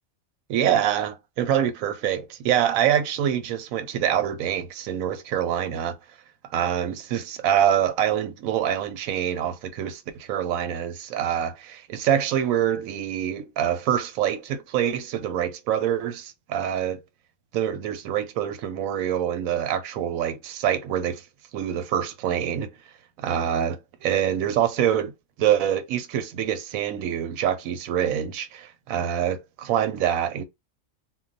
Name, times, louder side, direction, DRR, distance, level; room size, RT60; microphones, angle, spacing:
voice 1, 0.5-6.0 6.5-17.0 17.5-21.2 21.5-22.7 23.2-25.1 25.4-30.4, right 10 dB, 85° right, 1.0 m, -25 dB
2.3 x 2.2 x 3.8 m
omnidirectional pair, 1.4 m